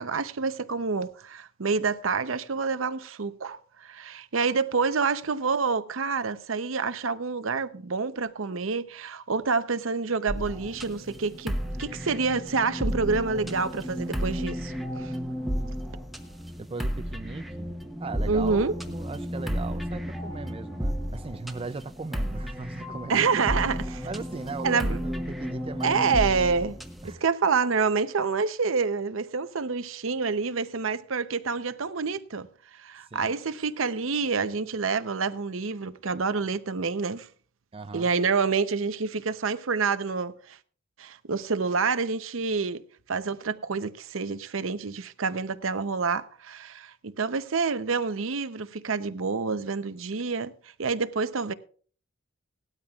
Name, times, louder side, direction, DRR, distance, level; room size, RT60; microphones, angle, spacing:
voice 1, 0.0-15.1 18.3-18.7 23.1-24.1 24.6-25.0 25.8-26.8 27.0-32.5 32.7-37.3 37.9-40.6 41.0-50.5 50.8-51.5, right 4 dB, 75° right, 0.7 m, -28 dB
sound 1, 10.3-27.1, equal, ahead, 1.0 m, -33 dB
voice 2, 16.6-17.7 18.0-23.3 24.0-26.3 27.0-27.2 33.1-33.4 37.7-38.1, right 3 dB, 25° right, 0.4 m, -38 dB
18.5 x 12.5 x 2.4 m
head